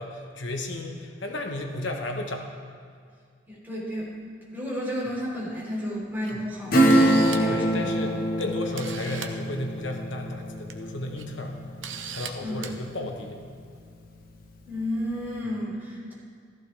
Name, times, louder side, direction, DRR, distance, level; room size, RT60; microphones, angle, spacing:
voice 1, 0.0-2.5 6.3-6.4 7.4-11.6 12.1-13.4, left 2 dB, 70° left, 2 dB, 1.1 m, -34 dB
voice 2, 3.5-4.1 4.5-7.9 12.4-12.6 14.6-16.1, equal, 10° right, -7 dB, 3.5 m, -32 dB
Camera, 6.2-6.3 6.7-7.6 8.4-8.5 8.8-9.3 10.5-10.7 11.2-11.3 11.8-12.3 12.6-12.7, right 8 dB, 80° right, 0.8 m, -37 dB
Acoustic guitar / Strum, 6.7-12.9 13.3-13.4, right 1 dB, 50° left, 1.2 m, -25 dB
14.5 x 14.0 x 3.4 m, 2.1 s
head